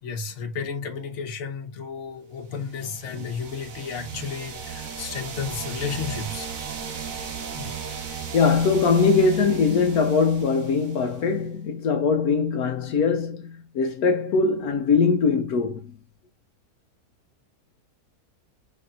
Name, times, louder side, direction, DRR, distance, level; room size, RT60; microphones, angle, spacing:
voice 1, 0.0-6.5 7.6-7.8, left 6 dB, 55° left, 1.2 m, -33 dB
sound 1, 2.6-11.4, right 6 dB, 65° right, 1.4 m, -36 dB
voice 2, 8.3-15.9, left 5 dB, 75° left, 1.2 m, -21 dB
5.1 x 4.2 x 2.5 m
omnidirectional pair, 1.6 m